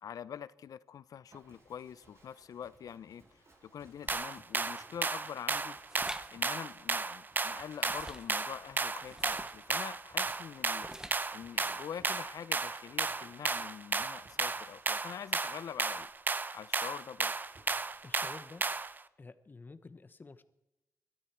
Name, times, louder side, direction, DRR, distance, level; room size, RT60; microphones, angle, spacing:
voice 1, 0.0-5.8 6.3-10.9 11.3-16.1 16.5-17.3, left 8 dB, 75° left, 18 dB, 0.6 m, -45 dB
Livestock farm animals working animals, 1.3-18.9, right 2 dB, 50° right, 7.0 m, -63 dB
sound 1, 4.1-19.0, right 4 dB, 30° right, 0.7 m, -34 dB
sound 2, 5.9-6.3 7.9-8.4 9.1-9.6 10.8-11.3, right 1 dB, 10° right, 1.0 m, -45 dB
voice 2, 18.0-18.7 19.2-20.4, left 3 dB, 30° left, 13 dB, 1.1 m, -50 dB
22.0 x 13.5 x 4.6 m, 0.93 s
cardioid pair, 95°, 6 cm